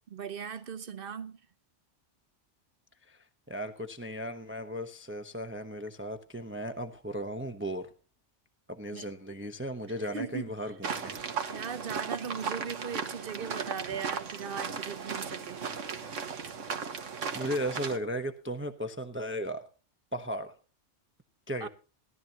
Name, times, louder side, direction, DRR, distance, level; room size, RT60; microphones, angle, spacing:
voice 1, 0.1-1.4 8.9-9.1 10.1-10.5 11.5-15.7 21.6-21.7, right 6 dB, 50° right, 1.0 m, -38 dB
voice 2, 3.1-7.9 8.7-11.2 17.3-19.7 20.1-20.6 21.5-21.7, equal, 10° right, 0.8 m, -36 dB
sound 1, 10.8-18.0, right 6 dB, 85° right, 1.6 m, -36 dB
17.5 x 12.5 x 2.9 m
omnidirectional pair, 1.2 m